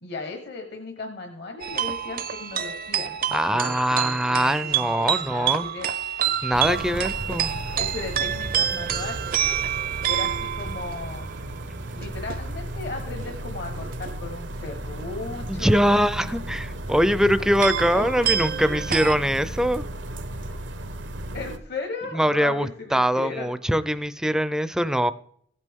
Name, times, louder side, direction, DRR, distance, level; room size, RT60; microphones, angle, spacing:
voice 1, 0.0-7.4 7.8-9.6 10.0-11.4 11.9-16.0 17.9-18.7 21.3-23.5, left 3 dB, 60° left, 4 dB, 1.2 m, -37 dB
sound 1, 1.6-11.4 11.9-12.4 13.2-13.4 13.8-14.1 15.5-16.0 17.1-17.2 17.4-19.2, right 10 dB, 50° right, 0.6 m, -28 dB
voice 2, 3.3-5.7 6.4-7.5 15.5-19.9 22.1-25.1, equal, 5° right, 13 dB, 0.4 m, -23 dB
sound 2, 6.5-21.6, right 1 dB, 85° right, 0.9 m, -34 dB
15.5 x 8.3 x 3.6 m, 0.65 s
head